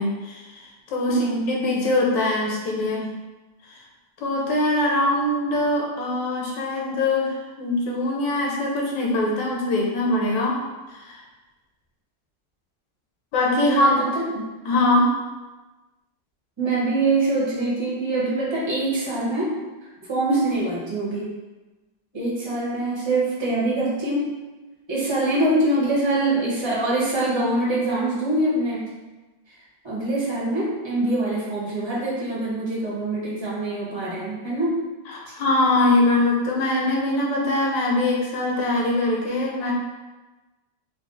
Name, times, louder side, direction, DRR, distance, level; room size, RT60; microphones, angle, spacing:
voice 1, 0.0-3.1 3.7-3.8 4.2-10.6 10.9-11.2 13.3-14.0 14.6-15.2 35.1-39.7, left 2 dB, 80° left, -2 dB, 1.5 m, -22 dB
voice 2, 1.1-1.6 13.6-14.5 16.6-19.5 20.1-21.3 22.1-24.4 24.9-28.9 29.8-34.8, right 2 dB, 20° right, -7 dB, 1.0 m, -24 dB
4.5 x 2.3 x 3.8 m, 1.2 s
omnidirectional pair, 2.0 m